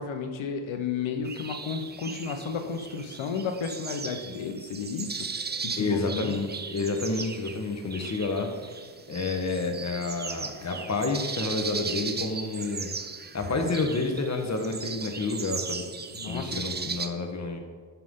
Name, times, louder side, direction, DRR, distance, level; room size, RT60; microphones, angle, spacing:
voice 1, 0.0-5.2 5.6-6.4 16.1-16.6, left 5 dB, 75° left, 6 dB, 1.1 m, -33 dB
sound 1, 1.2-17.1, right 5 dB, 20° right, 0.6 m, -37 dB
voice 2, 5.8-8.5 9.1-12.9 13.3-15.9 16.3-17.6, left 3 dB, 35° left, 4 dB, 1.4 m, -29 dB
11.5 x 5.8 x 3.8 m, 1.5 s
cardioid pair, 85°, 47 cm